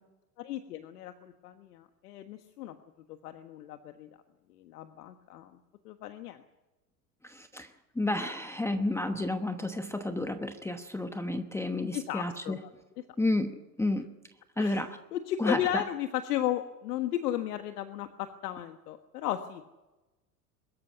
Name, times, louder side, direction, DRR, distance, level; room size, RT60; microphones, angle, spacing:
voice 1, 0.4-2.8 3.1-4.1 4.6-5.6 5.8-6.4 11.8-12.7 14.6-14.8 15.1-19.6, left 12 dB, 75° left, 8 dB, 1.5 m, -35 dB
voice 2, 7.2-12.6 13.2-14.1 14.6-15.0 15.4-15.8, left 2 dB, 5° left, 8 dB, 1.0 m, -31 dB
23.0 x 13.5 x 9.6 m, 1.1 s
hypercardioid pair, 110°, 47 cm